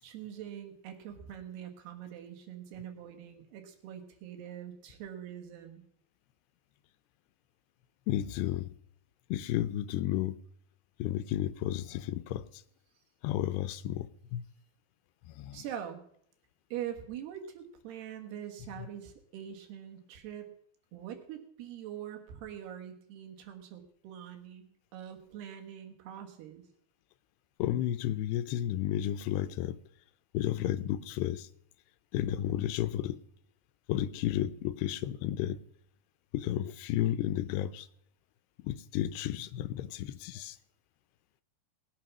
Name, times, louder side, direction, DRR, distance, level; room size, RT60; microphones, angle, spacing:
voice 1, 0.0-5.8 15.5-16.0 16.7-20.5 20.9-26.6, right 10 dB, 85° right, 3.7 m, -43 dB
voice 2, 8.1-8.7 9.3-10.4 11.0-12.4 13.2-14.1 14.3-14.4 15.4-15.6 27.6-29.8 30.3-31.5 32.1-33.2 33.9-35.6 36.3-37.9 38.6-40.6, left 12 dB, 90° left, 2.8 m, -32 dB
19.0 x 8.6 x 6.1 m
omnidirectional pair, 4.6 m